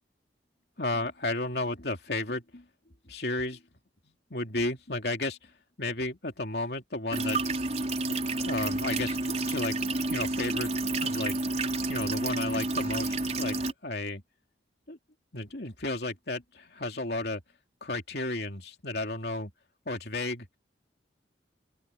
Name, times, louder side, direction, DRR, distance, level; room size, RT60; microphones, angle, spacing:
voice 1, 0.8-2.7 3.0-3.6 4.0-5.5 5.8-7.4 8.1-10.7 11.0-11.4 11.9-14.2 14.9-15.0 15.3-17.4 17.8-19.5 19.8-20.5, left 2 dB, 60° left, 3.1 m, -33 dB
sound 1, 7.1-13.7, right 2 dB, 40° right, 5.1 m, -30 dB
open air
head